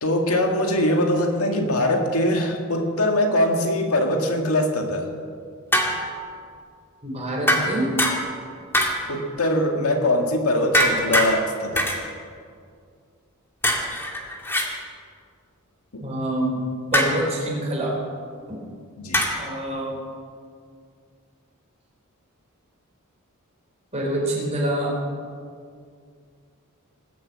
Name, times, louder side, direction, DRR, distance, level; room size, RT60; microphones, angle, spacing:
voice 1, 0.0-5.1 9.1-11.9 15.9-16.0 19.0-19.2, left 1 dB, 80° left, 3 dB, 2.0 m, -22 dB
sound 1, 5.7-6.3 7.5-8.4 8.7-9.2 10.7-11.3 11.8-12.0 13.6-14.7 16.9-17.3 19.1-19.5, equal, 10° left, 2.0 m, -22 dB
voice 2, 7.0-7.9 16.0-16.6 16.9-18.0 18.5-18.6 19.4-20.0 23.9-24.9, right 1 dB, 30° right, -2 dB, 4.1 m, -26 dB
20.0 x 7.8 x 8.4 m, 2.2 s
head